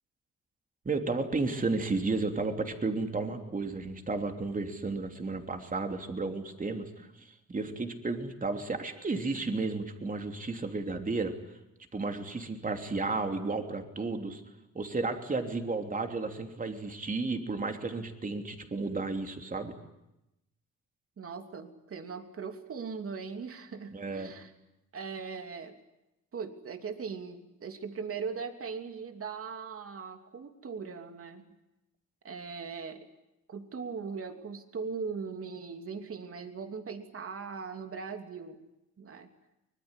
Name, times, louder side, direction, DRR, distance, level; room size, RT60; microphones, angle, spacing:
voice 1, 0.8-11.6 11.9-14.4 14.7-19.7 23.9-24.3, right 3 dB, 25° right, 5 dB, 3.2 m, -33 dB
voice 2, 21.2-24.5 24.9-25.8 26.3-31.4 32.2-33.1 33.5-38.6 39.0-39.3, right 5 dB, 50° right, 6 dB, 2.9 m, -39 dB
24.5 x 20.5 x 9.9 m, 0.90 s
cardioid pair, 90°, 30 cm